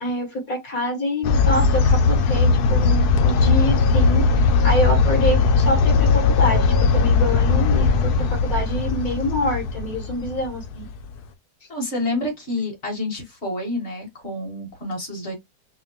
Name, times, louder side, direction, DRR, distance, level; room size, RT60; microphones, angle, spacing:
voice 1, 0.0-4.2 4.6-10.9, left 1 dB, 60° left, 2.1 m, -26 dB
sound 1, 1.2-11.0, left 4 dB, 75° left, 1.2 m, -18 dB
voice 2, 11.7-15.3, left 1 dB, 45° left, 1.8 m, -28 dB
4.8 x 2.0 x 3.0 m
omnidirectional pair, 1.7 m